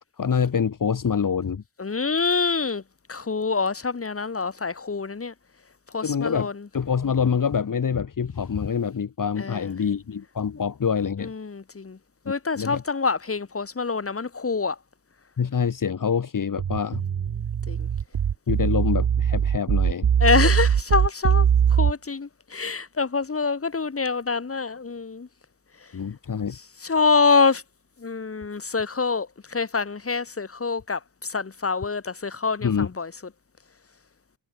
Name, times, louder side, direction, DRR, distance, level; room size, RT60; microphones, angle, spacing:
voice 1, 0.2-1.6 6.0-11.3 12.6-12.8 15.4-17.0 18.5-20.1 25.9-26.6 32.6-32.9, left 6 dB, 45° left, 3.2 m, -26 dB
voice 2, 1.8-2.8 3.1-5.3 5.9-6.6 9.4-9.7 11.2-12.0 12.3-14.8 17.7-17.9 20.2-25.3 26.8-27.6 28.0-33.1, left 4 dB, 30° left, 4.4 m, -25 dB
sound 1, 16.6-21.9, right 8 dB, 60° right, 3.1 m, -21 dB
wide cardioid pair, 120°, 43 cm